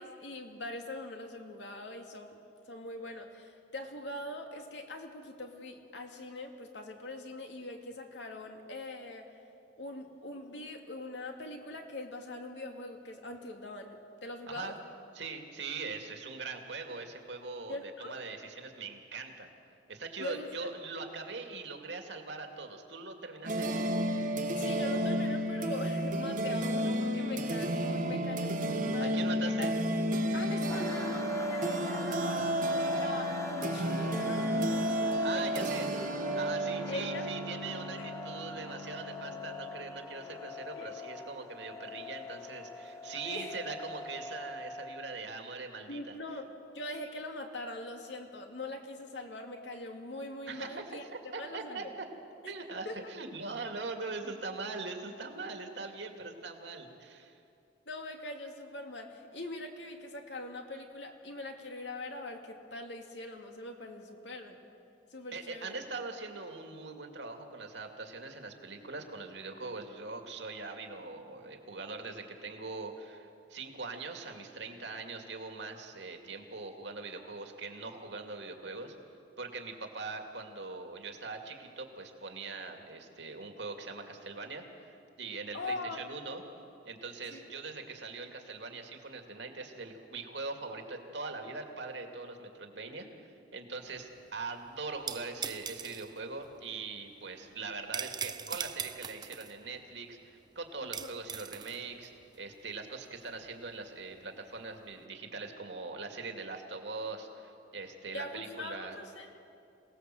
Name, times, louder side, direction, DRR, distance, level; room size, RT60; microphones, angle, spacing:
voice 1, 0.0-2.4 2.6-9.4 9.8-14.8 17.7-18.2 20.2-20.7 23.7-23.8 24.5-29.2 29.4-29.7 30.3-34.5 35.3-35.7 36.9-37.3 38.0-38.1 40.7-40.9 43.2-43.6 45.9-46.5 46.7-51.1 51.4-51.9 52.4-52.5 52.9-53.0 57.9-64.6 65.1-65.8 85.5-86.0 87.3-87.5 100.8-101.1 108.1-109.4, left 2 dB, 80° left, 3 dB, 2.5 m, -42 dB
voice 2, 15.1-19.5 19.9-23.7 29.0-29.7 35.2-35.9 36.3-46.2 50.5-51.0 51.3-52.1 52.5-57.3 65.3-78.9 79.4-86.4 86.8-109.0, right 3 dB, 80° right, 4 dB, 2.4 m, -42 dB
sound 1, 23.4-40.1, equal, 50° right, 1.3 m, -32 dB
sound 2, 30.7-45.2, left 2 dB, 15° left, 0.8 m, -43 dB
sound 3, 93.9-104.9, right 7 dB, 25° right, 0.5 m, -42 dB
26.5 x 18.5 x 7.8 m, 2.6 s
head